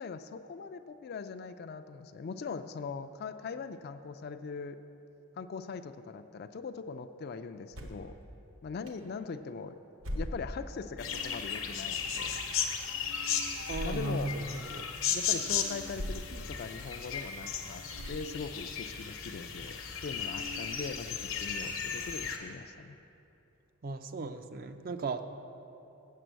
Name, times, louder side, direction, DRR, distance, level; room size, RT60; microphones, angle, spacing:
voice 1, 0.0-4.8 5.4-8.1 8.6-9.8 10.1-12.4 13.8-14.3 15.1-17.8 18.1-19.7 20.0-23.0, left 5 dB, 50° left, 10 dB, 0.3 m, -41 dB
sound 1, 7.7-8.1 8.9-9.0 10.0-10.7 11.3-11.5 13.6-14.1 14.8-14.9 15.9-16.4 16.9-17.0 17.9-18.5, equal, 75° right, 1.1 m, -39 dB
sound 2, 11.0-22.4, left 7 dB, 75° left, 0.9 m, -35 dB
voice 2, 13.7-14.9 23.8-25.2, right 3 dB, 45° right, 9 dB, 0.4 m, -36 dB
7.5 x 6.8 x 7.9 m, 2.9 s
head